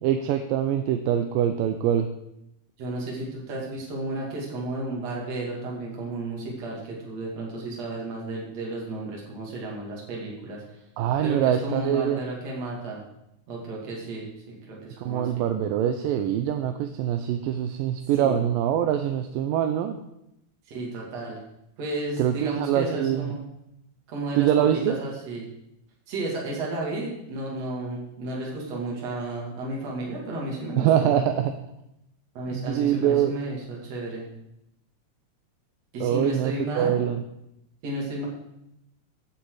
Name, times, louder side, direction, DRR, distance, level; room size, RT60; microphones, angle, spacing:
voice 1, 0.0-2.1 11.0-12.3 15.0-20.0 22.2-23.3 24.4-25.0 30.8-31.5 32.5-33.4 36.0-37.2, right 10 dB, 85° right, 6 dB, 2.4 m, -24 dB
voice 2, 2.8-10.6 11.2-13.0 13.5-15.5 18.2-18.4 20.7-21.4 21.8-23.4 24.1-24.5 24.9-25.4 26.1-31.2 32.4-34.3 35.9-37.0 37.8-38.3, right 2 dB, 50° right, -3 dB, 3.6 m, -33 dB
15.0 x 8.9 x 4.9 m, 0.84 s
omnidirectional pair, 3.9 m